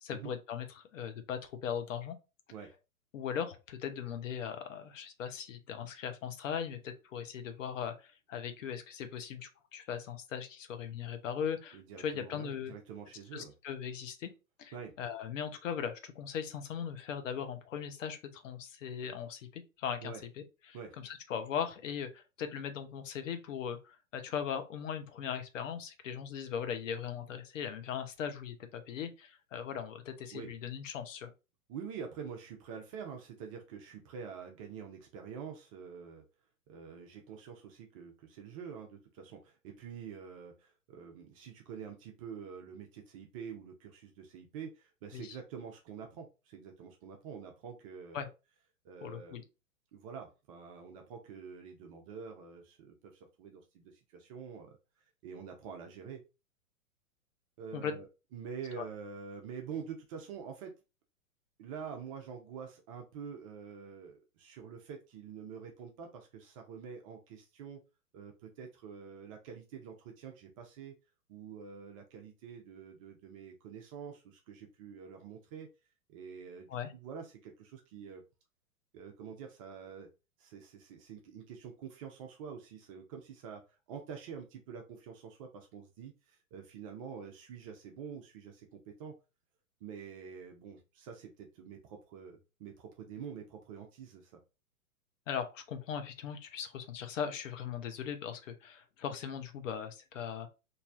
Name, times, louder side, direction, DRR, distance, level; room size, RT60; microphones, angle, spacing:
voice 1, 0.0-2.2 3.1-12.7 13.3-14.3 14.6-20.1 20.7-31.3 45.1-45.4 48.1-48.3 49.0-49.4 57.7-57.9 58.7-58.9 76.7-76.9 95.3-100.5, left 8 dB, 60° left, 0.8 m, -39 dB
voice 2, 11.7-13.5 14.7-14.9 20.0-20.2 20.7-21.0 30.3-30.5 31.7-36.2 36.7-48.3 48.8-49.5 49.9-54.8 55.2-56.2 57.6-58.1 58.3-60.7 61.6-67.8 68.1-70.9 71.3-75.7 76.1-78.2 78.9-80.1 80.4-83.6 83.9-89.1 89.8-94.4, right 6 dB, 25° right, 0.4 m, -46 dB
3.1 x 2.6 x 2.4 m
hypercardioid pair, 110°, 43 cm